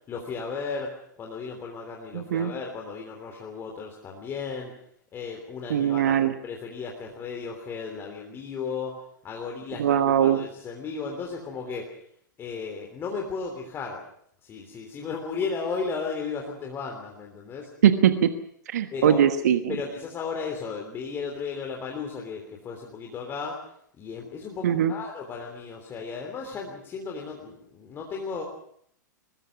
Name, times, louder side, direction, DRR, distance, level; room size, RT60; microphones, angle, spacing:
voice 1, 0.1-4.7 5.1-12.0 12.4-14.0 14.4-17.7 18.9-19.2 19.7-23.6 24.0-28.4, left 5 dB, 20° left, 1 dB, 3.3 m, -35 dB
voice 2, 2.1-2.5 5.7-6.3 9.8-10.4 17.8-18.3 18.7-19.8 24.6-24.9, right 9 dB, 55° right, 10 dB, 1.3 m, -21 dB
23.0 x 21.0 x 6.1 m, 0.67 s
figure-of-eight pair, 105°, 11 cm